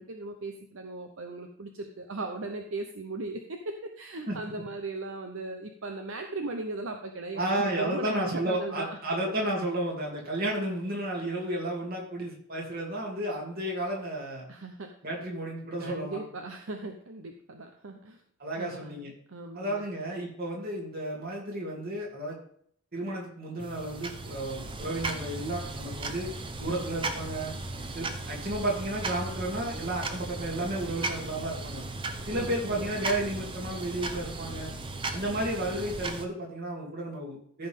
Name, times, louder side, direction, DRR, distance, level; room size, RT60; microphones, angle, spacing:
voice 1, 0.0-9.2 14.5-14.9 15.8-18.2 18.6-19.8 32.3-33.0, right 2 dB, 65° right, 5 dB, 0.8 m, -38 dB
voice 2, 7.3-14.4 15.0-16.2 18.4-19.1 19.5-22.3 22.9-26.3 26.6-27.5 27.9-31.8 32.3-34.7 35.1-37.7, right 1 dB, 45° right, -2 dB, 2.8 m, -32 dB
sound 1, 23.6-36.2, right 3 dB, 25° right, 0.7 m, -36 dB
14.0 x 5.5 x 3.6 m, 0.63 s
head